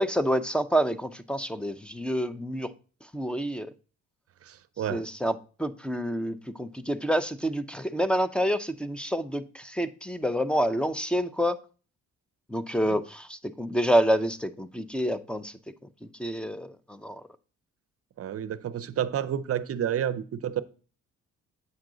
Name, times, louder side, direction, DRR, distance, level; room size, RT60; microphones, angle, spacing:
voice 1, 0.0-2.7 3.1-3.7 4.9-11.6 12.5-15.5 16.2-17.2, equal, 5° left, 0.6 m, -28 dB
voice 2, 4.4-5.0 18.2-20.6, right 10 dB, 50° right, 0.6 m, -30 dB
8.4 x 5.9 x 3.8 m
cardioid pair, 90°, 30 cm